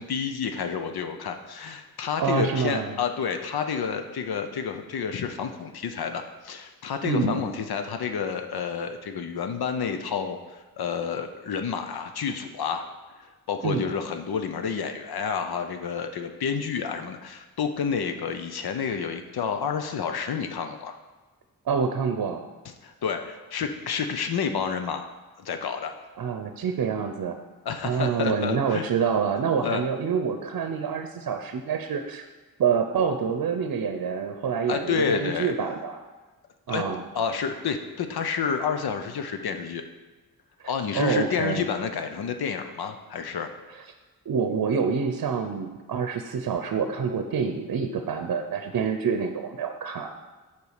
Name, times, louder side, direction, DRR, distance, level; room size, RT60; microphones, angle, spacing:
voice 1, 0.0-12.9 13.2-20.9 22.8-25.0 25.4-25.9 27.6-28.8 29.6-29.8 34.7-35.5 36.7-36.8 37.1-39.8 40.6-43.5, left 6 dB, 85° left, 7 dB, 0.8 m, -29 dB
voice 2, 2.2-3.0 7.0-7.4 13.6-13.9 21.7-22.4 26.2-27.4 27.8-32.2 32.6-36.0 36.7-37.0 40.6-41.7 44.3-50.1, right 6 dB, 65° right, 6 dB, 0.7 m, -27 dB
6.9 x 4.8 x 6.6 m, 1.3 s
wide cardioid pair, 120°, 37 cm